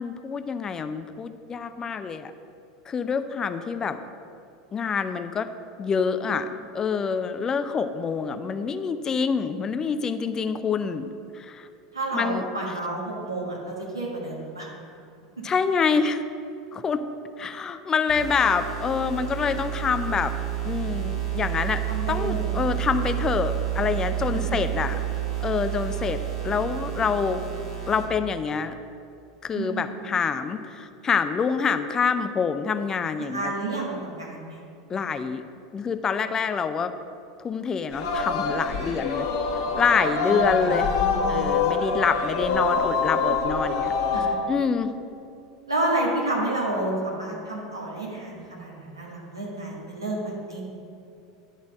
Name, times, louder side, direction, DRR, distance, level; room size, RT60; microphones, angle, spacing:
voice 1, 0.0-2.3 2.9-4.0 4.7-5.5 5.8-6.5 6.7-11.1 11.3-11.7 12.1-12.4 15.4-16.2 16.7-17.0 17.4-20.3 20.6-21.8 22.1-25.0 25.4-27.4 27.9-28.7 29.4-33.5 34.9-35.4 35.7-36.9 37.4-39.3 39.8-40.9 41.3-43.9 44.5-45.0, left 6 dB, 25° left, 10 dB, 0.4 m, -26 dB
voice 2, 11.9-14.7 21.9-22.5 29.5-29.9 33.2-34.6 38.8-38.9 40.2-41.4 44.1-44.4 45.7-50.6, right 2 dB, 90° right, -4 dB, 1.8 m, -30 dB
sound 1, 18.1-28.1, right 12 dB, 65° right, 1.8 m, -30 dB
Singing, 37.9-44.3, left 4 dB, 60° left, 1.2 m, -25 dB
10.5 x 4.0 x 6.4 m, 2.6 s
figure-of-eight pair, 80°, 2 cm